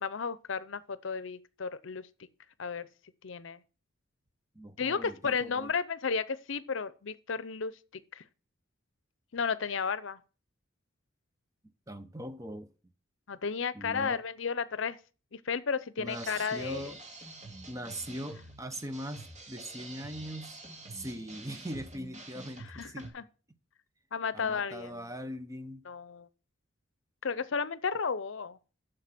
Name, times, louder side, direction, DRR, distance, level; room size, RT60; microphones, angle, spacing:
voice 1, 0.0-2.1 2.6-2.9 3.2-3.6 4.8-7.7 8.1-8.2 9.3-10.2 13.3-15.0 15.3-16.9 22.7-23.2 24.1-25.1 25.9-26.3 27.2-28.6, left 5 dB, 70° left, 0.6 m, -33 dB
voice 2, 4.5-5.7 11.9-12.7 13.7-14.2 16.0-17.0 17.7-20.6 20.9-23.1 24.3-25.8, equal, 15° right, 0.8 m, -41 dB
sound 1, 16.1-23.1, right 2 dB, 35° right, 2.5 m, -47 dB
7.7 x 6.5 x 7.5 m
head